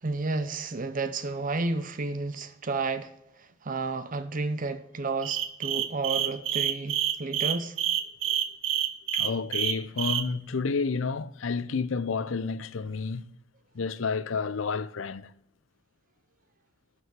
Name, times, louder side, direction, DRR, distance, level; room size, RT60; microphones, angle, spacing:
voice 1, 0.0-3.1 3.4-7.8, right 3 dB, 40° right, 0.6 m, -31 dB
sound 1, 5.2-10.2, right 10 dB, 80° right, 1.0 m, -27 dB
voice 2, 9.1-13.2 13.7-15.3, left 4 dB, 75° left, 0.6 m, -30 dB
12.5 x 4.9 x 8.0 m
head